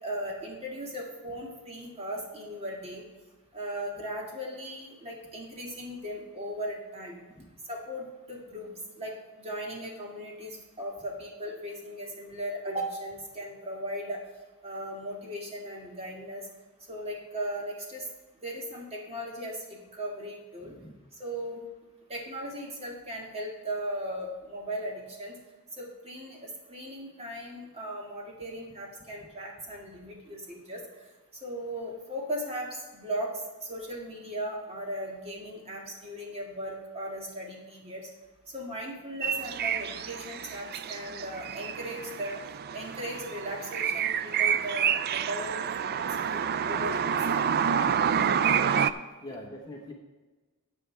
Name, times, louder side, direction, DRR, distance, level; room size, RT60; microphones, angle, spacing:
voice 1, 0.0-3.0 3.5-7.2 7.7-14.2 14.6-16.5 16.9-18.1 18.4-20.7 21.2-21.6 22.1-25.4 25.8-30.8 31.4-33.4 33.7-38.1 38.5-42.4 42.7-47.2, equal, 30° right, -1 dB, 1.9 m, -37 dB
voice 2, 20.6-20.9 47.8-47.9 49.2-49.9, left 1 dB, 15° left, 0 dB, 1.0 m, -44 dB
sound 1, 39.2-48.9, right 8 dB, 45° right, 0.3 m, -28 dB
13.5 x 8.2 x 3.4 m, 1.3 s
head